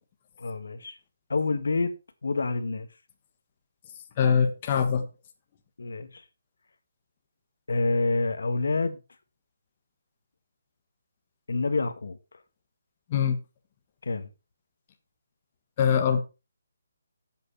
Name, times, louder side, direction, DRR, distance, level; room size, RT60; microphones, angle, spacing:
voice 1, 0.4-1.0 1.3-2.9 5.8-6.2 7.7-9.0 11.5-12.4 14.0-14.3, left 3 dB, 75° left, 1.8 m, -28 dB
voice 2, 4.2-5.0 13.1-13.4 15.8-16.2, left 7 dB, 25° left, 1.4 m, -22 dB
11.5 x 8.2 x 4.2 m
hypercardioid pair, 175°, 0 cm